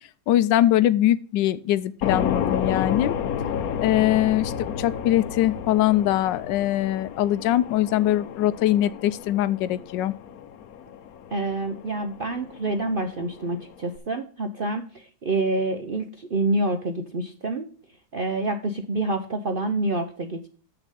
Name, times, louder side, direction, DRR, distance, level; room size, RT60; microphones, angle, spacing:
voice 1, 0.3-3.2 3.8-10.1, left 13 dB, 90° left, 15 dB, 1.3 m, -22 dB
sound 1, 2.0-14.0, left 8 dB, 60° left, 1.1 m, -31 dB
voice 2, 11.3-17.7 18.1-20.5, right 2 dB, 55° right, 7 dB, 0.6 m, -27 dB
7.0 x 6.7 x 5.5 m, 0.41 s
omnidirectional pair, 1.9 m